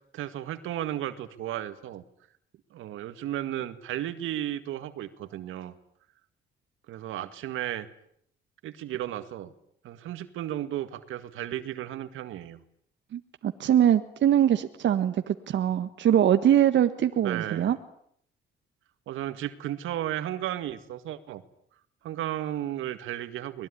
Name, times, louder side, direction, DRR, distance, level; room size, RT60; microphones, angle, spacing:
voice 1, 0.1-2.0 2.7-5.7 6.9-7.9 8.6-9.5 9.8-12.6 17.2-17.7 19.1-21.4 22.0-23.7, right 12 dB, 85° right, 11 dB, 2.0 m, -34 dB
voice 2, 13.1-17.8, right 10 dB, 65° right, 8 dB, 1.5 m, -23 dB
24.5 x 20.5 x 10.0 m, 0.68 s
cardioid pair, 90°, 20 cm